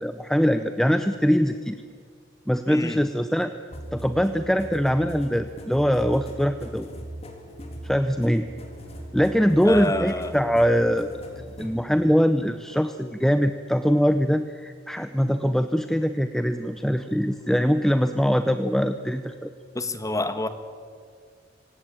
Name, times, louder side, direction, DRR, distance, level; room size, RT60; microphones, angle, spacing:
voice 1, 0.0-1.8 2.5-3.5 3.9-6.9 7.8-8.5 9.1-19.5, equal, ahead, 9 dB, 0.7 m, -22 dB
voice 2, 2.7-3.0 9.6-10.4 19.7-20.5, left 2 dB, 20° left, 10 dB, 1.5 m, -28 dB
sound 1, 3.7-11.8, right 1 dB, 35° left, 3.5 m, -40 dB
25.5 x 17.5 x 9.1 m, 2.1 s
head